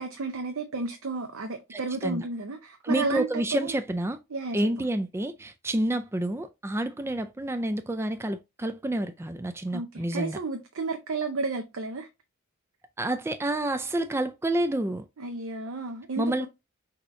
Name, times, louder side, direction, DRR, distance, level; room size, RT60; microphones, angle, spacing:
voice 1, 0.0-3.7 4.3-4.7 9.7-12.1 15.2-16.5, right 3 dB, 75° right, 0.7 m, -32 dB
voice 2, 1.7-2.2 2.8-4.2 4.5-10.4 13.0-15.0 16.2-16.5, right 1 dB, 10° right, 0.3 m, -29 dB
6.1 x 2.8 x 2.5 m
head